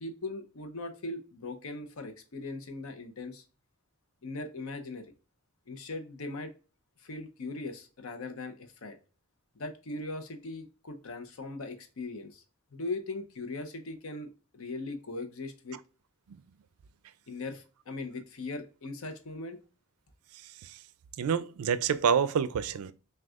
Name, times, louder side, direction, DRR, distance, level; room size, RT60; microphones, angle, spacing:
voice 1, 0.0-3.4 4.2-5.0 5.7-6.5 7.0-9.0 9.6-12.4 12.7-15.8 17.3-19.6, left 2 dB, 70° left, 0.7 m, -39 dB
voice 2, 21.2-22.9, right 7 dB, 85° right, 0.3 m, -27 dB
6.1 x 2.3 x 2.3 m
head